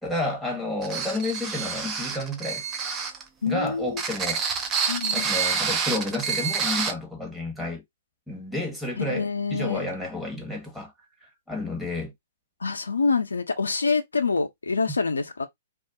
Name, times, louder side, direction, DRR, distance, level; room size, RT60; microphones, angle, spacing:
voice 1, 0.0-2.6 3.5-4.4 5.1-7.8 8.3-10.9 11.5-12.1, left 2 dB, ahead, 1.0 m, -31 dB
sound 1, 0.8-3.2 3.9-6.9, right 6 dB, 25° right, 0.5 m, -28 dB
voice 2, 3.4-4.0 4.9-5.3 9.0-9.9 12.6-15.4, left 4 dB, 80° left, 0.5 m, -26 dB
2.4 x 2.1 x 3.7 m
figure-of-eight pair, 120°, 0 cm